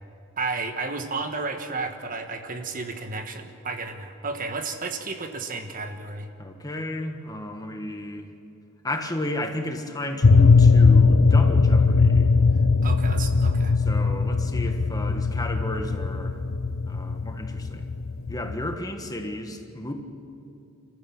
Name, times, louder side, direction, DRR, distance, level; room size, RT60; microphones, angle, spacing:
voice 1, 0.4-6.3 12.8-13.7, right 3 dB, 40° right, 6 dB, 1.4 m, -32 dB
voice 2, 6.4-8.3 8.8-12.3 13.8-16.4 16.8-17.9 18.3-19.9, left 1 dB, 20° left, 5 dB, 1.4 m, -33 dB
sound 1, 10.2-18.7, left 4 dB, 70° left, 0.8 m, -19 dB
29.0 x 14.5 x 7.2 m, 2.6 s
head